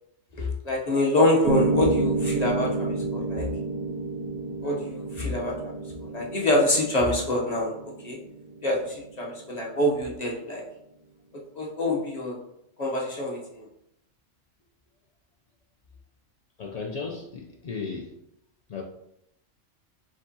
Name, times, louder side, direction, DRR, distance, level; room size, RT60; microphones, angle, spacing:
voice 1, 0.3-3.5 4.6-5.7 6.0-7.7 8.0-8.2 8.6-10.6 11.5-12.4 12.8-13.6, left 1 dB, 35° left, -2 dB, 0.8 m, -26 dB
Piano, 1.4-9.5, right 3 dB, 80° right, 1.1 m, -29 dB
voice 2, 16.6-18.1 18.7-18.8, left 4 dB, 85° left, 0 dB, 0.3 m, -35 dB
5.0 x 3.6 x 2.7 m, 0.77 s
omnidirectional pair, 1.4 m